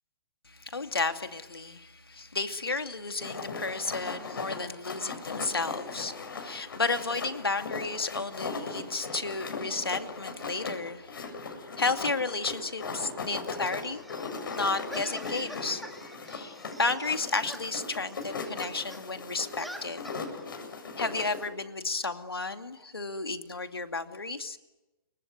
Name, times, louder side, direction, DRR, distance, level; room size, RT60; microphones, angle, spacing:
voice 1, 0.5-11.1 11.8-14.0 14.5-20.0 21.0-24.6, left 3 dB, 85° left, 7 dB, 2.5 m, -32 dB
sound 1, 3.2-21.5, left 4 dB, 65° left, 7.6 m, -38 dB
sound 2, 13.2-19.0 19.3-20.4 21.1-21.3, equal, ahead, 2.0 m, -47 dB
29.0 x 24.5 x 8.0 m, 1.0 s
figure-of-eight pair, 130°, 12 cm